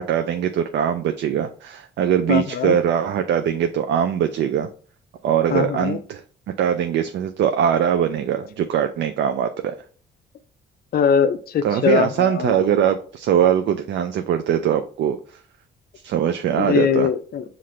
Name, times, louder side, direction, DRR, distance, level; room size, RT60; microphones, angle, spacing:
voice 1, 0.0-4.7 5.2-6.2 6.6-9.8 11.6-15.2 16.0-17.1, right 9 dB, 65° right, 7 dB, 0.4 m, -21 dB
voice 2, 2.3-2.8 5.5-6.0 10.9-12.6 16.6-17.4, left 8 dB, 50° left, 12 dB, 0.5 m, -21 dB
5.8 x 2.5 x 3.2 m, 0.44 s
cardioid pair, 90°, 20 cm